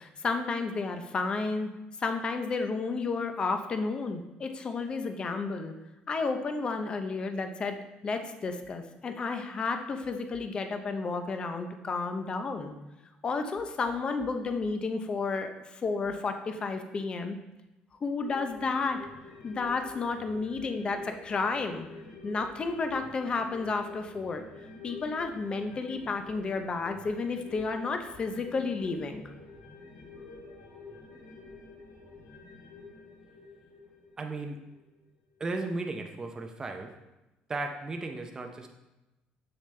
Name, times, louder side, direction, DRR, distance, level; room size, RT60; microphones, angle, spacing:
voice 1, 0.0-1.7 2.0-5.7 6.1-7.8 8.0-12.7 13.2-17.4 18.0-19.0 19.4-21.9 22.2-24.4 24.8-29.2, left 4 dB, 30° left, 7 dB, 0.6 m, -32 dB
sound 1, 18.2-35.0 35.4-35.5, left 3 dB, 85° left, 2.6 m, -48 dB
voice 2, 34.2-34.6 35.4-36.9 37.5-38.7, right 3 dB, 20° right, 3 dB, 0.6 m, -35 dB
6.9 x 6.8 x 3.3 m, 1.0 s
cardioid pair, 140°, 3 cm